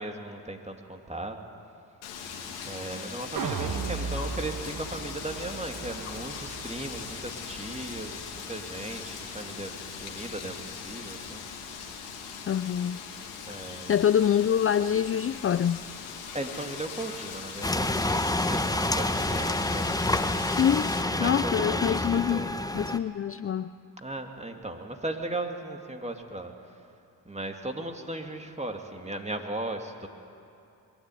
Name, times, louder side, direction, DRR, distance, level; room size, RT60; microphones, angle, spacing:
voice 1, 0.0-1.4 2.7-9.7 10.0-11.4 13.5-14.0 16.3-19.9 21.1-22.5 24.0-26.5 27.2-30.1, right 2 dB, 15° right, 4 dB, 2.6 m, -37 dB
Wind, 2.0-21.0, left 6 dB, 90° left, 2.1 m, -40 dB
sound 1, 3.4-9.6 10.0-10.1, right 5 dB, 50° right, 1.4 m, -37 dB
voice 2, 12.5-13.0 13.9-15.8 20.5-20.9 21.2-22.5 22.7-23.7, left 9 dB, 30° left, 14 dB, 0.5 m, -25 dB
sound 2, 17.6-23.0, left 1 dB, 10° left, 1.1 m, -28 dB
22.0 x 13.5 x 9.4 m, 2.6 s
hypercardioid pair, 45°, 43 cm